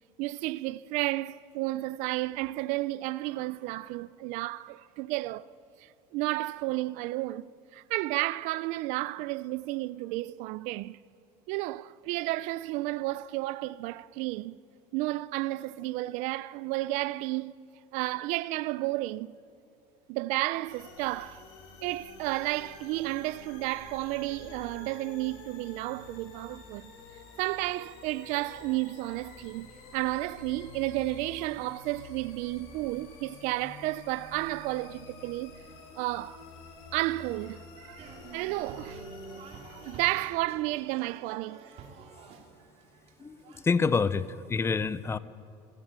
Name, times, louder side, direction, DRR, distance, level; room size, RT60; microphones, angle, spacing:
voice 1, 0.2-5.5 5.8-11.0 11.5-14.6 14.9-17.5 17.9-19.4 20.1-21.4 21.8-26.9 27.4-35.6 36.0-36.4 36.9-38.0 38.3-39.1 39.6-41.7, right 19 dB, 70° right, 0.6 m, -32 dB
sound 1, 20.7-40.3, left 4 dB, 85° left, 5.9 m, -49 dB
sound 2, 38.0-44.3, right 5 dB, 55° right, 2.9 m, -49 dB
voice 2, 43.6-45.2, left 5 dB, 20° left, 0.7 m, -27 dB
29.0 x 13.5 x 9.0 m
cardioid pair, 125°, 13 cm